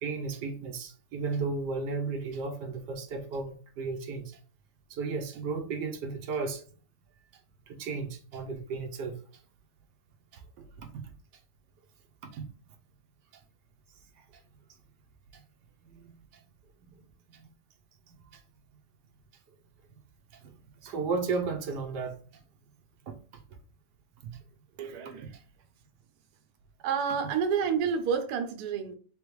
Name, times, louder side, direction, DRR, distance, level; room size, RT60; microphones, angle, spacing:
voice 1, 0.0-4.4 4.9-6.6 7.7-9.2 10.3-10.4 10.8-11.0 12.2-12.4 15.8-16.4 16.8-17.5 18.1-18.4 20.3-22.1 23.1-23.2 24.2-24.4, right 4 dB, 90° right, 1.3 m, -35 dB
voice 2, 24.8-25.4 26.8-29.0, right 6 dB, 75° right, 1.2 m, -29 dB
3.8 x 3.4 x 3.1 m
omnidirectional pair, 1.8 m